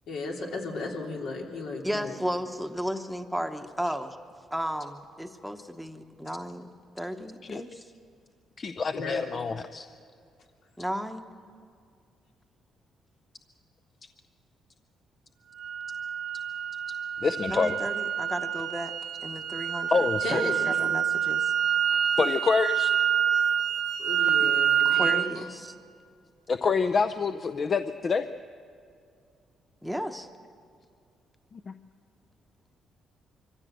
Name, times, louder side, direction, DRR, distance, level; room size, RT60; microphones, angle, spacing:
voice 1, 0.1-2.2 8.9-9.3 20.2-20.6 24.0-25.4, left 3 dB, 75° left, -1 dB, 3.1 m, -35 dB
voice 2, 1.8-4.2 4.5-6.7 7.0-7.8 10.8-11.3 17.5-18.9 19.2-21.5 24.4-24.5 24.8-25.7 29.8-30.3, equal, ahead, 6 dB, 1.0 m, -34 dB
voice 3, 8.6-9.9 17.2-17.7 19.9-20.4 21.9-22.9 26.5-28.3 31.5-31.7, left 5 dB, 40° left, 10 dB, 0.6 m, -27 dB
sound 1, 15.6-25.3, right 8 dB, 75° right, 1.2 m, -27 dB
23.5 x 15.5 x 7.8 m, 2.3 s
cardioid pair, 90°, 0 cm